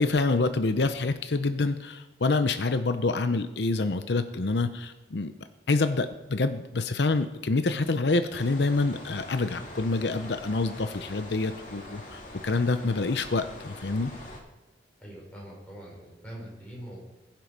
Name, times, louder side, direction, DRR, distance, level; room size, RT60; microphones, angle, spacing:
voice 1, 0.0-5.3 5.7-14.1, left 3 dB, 75° left, 9 dB, 0.7 m, -27 dB
sound 1, 8.3-14.4, left 1 dB, 45° left, 2.7 m, -44 dB
voice 2, 15.0-17.0, equal, 5° left, -4 dB, 5.1 m, -43 dB
21.0 x 7.6 x 5.4 m, 1.0 s
head